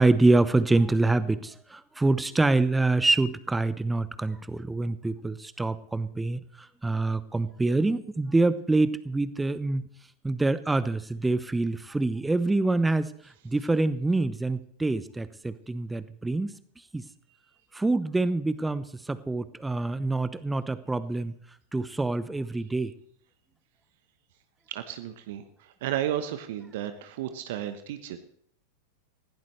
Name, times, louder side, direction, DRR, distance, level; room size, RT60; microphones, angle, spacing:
voice 1, 0.0-9.8 10.2-13.1 13.4-16.5 16.9-17.0 17.7-21.3 21.7-22.9, right 2 dB, 10° right, 15 dB, 0.9 m, -26 dB
voice 2, 24.7-28.2, right 11 dB, 55° right, 9 dB, 1.1 m, -33 dB
20.0 x 16.0 x 3.3 m, 0.65 s
figure-of-eight pair, 90°, 0 cm